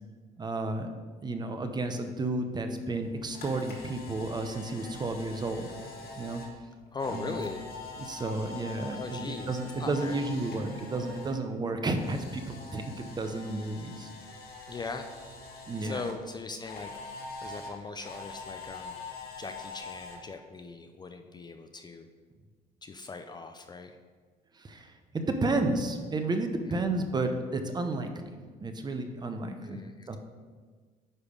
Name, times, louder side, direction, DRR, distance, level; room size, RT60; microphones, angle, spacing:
voice 1, 0.4-1.0 1.2-5.7 6.2-6.4 7.1-7.4 8.0-14.1 15.7-16.0 24.5-29.8 30.1-30.2, right 2 dB, 25° right, 6 dB, 0.7 m, -32 dB
Camera, 3.0-11.3 11.6-16.1 16.6-20.2, left 3 dB, 65° left, 1.8 m, -44 dB
voice 2, 6.9-7.6 8.9-10.2 14.7-15.1 15.8-18.9 19.4-22.1 22.8-24.0 26.6-26.9 29.6-30.2, left 4 dB, 25° left, 6 dB, 0.4 m, -40 dB
9.6 x 3.4 x 5.3 m, 1.5 s
cardioid pair, 110°, 17 cm